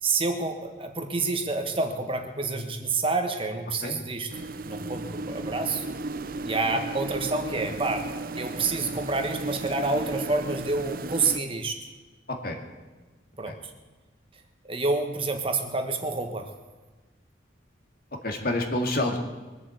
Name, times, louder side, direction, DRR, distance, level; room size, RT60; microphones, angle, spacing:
voice 1, 0.0-4.3 4.7-5.8 6.4-8.1 8.3-11.8 13.4-13.7 14.7-16.5, right 3 dB, 25° right, 5 dB, 1.4 m, -28 dB
sound 1, 4.3-11.4, right 2 dB, 45° right, 0.6 m, -35 dB
voice 2, 12.3-12.6 13.4-13.5 18.2-19.2, left 1 dB, 50° left, 3 dB, 2.2 m, -28 dB
22.0 x 7.7 x 8.1 m, 1.2 s
head